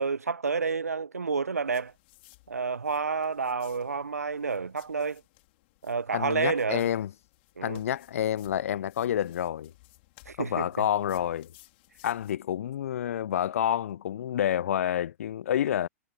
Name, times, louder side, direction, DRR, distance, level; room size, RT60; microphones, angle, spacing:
voice 1, 0.0-1.9 2.5-5.2 5.8-6.9 7.6-7.8 10.3-10.6, right 5 dB, 85° right, 0.7 m, -29 dB
sound 1, 1.7-12.3, left 22 dB, 50° left, 3.8 m, -59 dB
voice 2, 6.1-7.1 7.6-9.7 10.4-11.5 12.0-15.9, left 10 dB, 65° left, 0.4 m, -28 dB
figure-of-eight pair, 105°, 8 cm